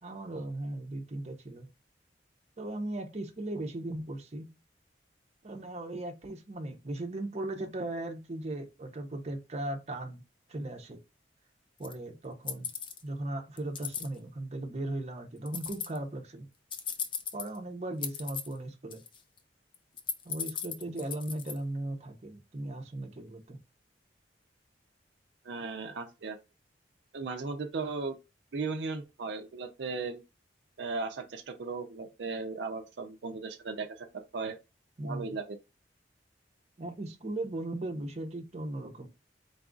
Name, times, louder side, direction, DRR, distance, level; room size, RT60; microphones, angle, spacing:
voice 1, 0.0-1.7 2.6-4.5 5.4-10.2 10.5-11.0 11.8-12.7 13.0-16.5 17.3-19.0 20.2-23.6 35.0-35.3 36.8-39.1, right 1 dB, 40° right, 0.7 m, -37 dB
sound 1, 11.8-11.9 12.5-13.0 13.6-14.1 15.4-16.0 16.7-17.6 18.0-18.6 18.9-19.4 19.7-21.6, left 7 dB, 30° left, 0.5 m, -36 dB
voice 2, 25.4-26.4 27.1-28.2 28.5-30.2 30.8-34.1 34.3-34.6 35.0-35.6, right 4 dB, 75° right, 0.5 m, -36 dB
4.0 x 2.4 x 3.8 m
head